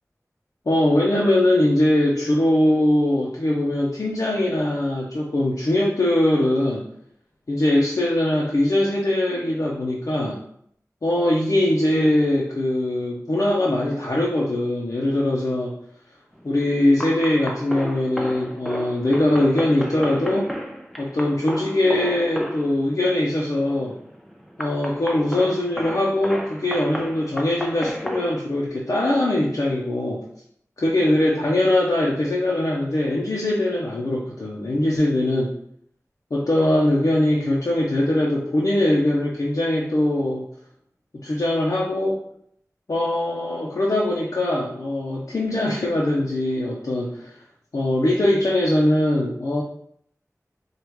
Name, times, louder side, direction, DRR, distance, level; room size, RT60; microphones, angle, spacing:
voice 1, 0.7-6.8 7.5-10.4 11.0-15.8 16.4-20.5 21.0-24.0 24.6-30.2 30.8-35.5 36.3-40.4 41.2-42.2 42.9-47.4 47.7-49.6, left 1 dB, 65° left, -4 dB, 0.6 m, -21 dB
sound 1, 16.4-28.4, equal, 5° left, 0.5 m, -33 dB
4.9 x 2.4 x 3.0 m, 0.67 s
wide cardioid pair, 55°, 6 cm